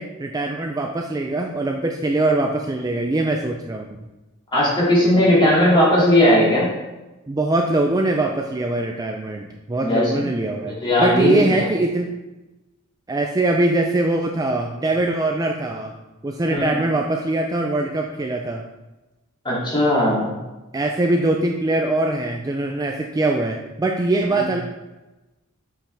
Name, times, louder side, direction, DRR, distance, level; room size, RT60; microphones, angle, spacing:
voice 1, 0.0-3.9 7.3-10.7 11.0-12.1 13.1-15.9 16.2-18.6 20.7-24.6, right 2 dB, 15° right, 2 dB, 0.4 m, -22 dB
voice 2, 4.5-6.7 9.8-10.3 10.6-11.7 16.5-16.8 19.4-20.4 24.3-24.4, left 1 dB, 20° left, -7 dB, 2.6 m, -18 dB
7.5 x 5.4 x 3.4 m, 1.1 s
head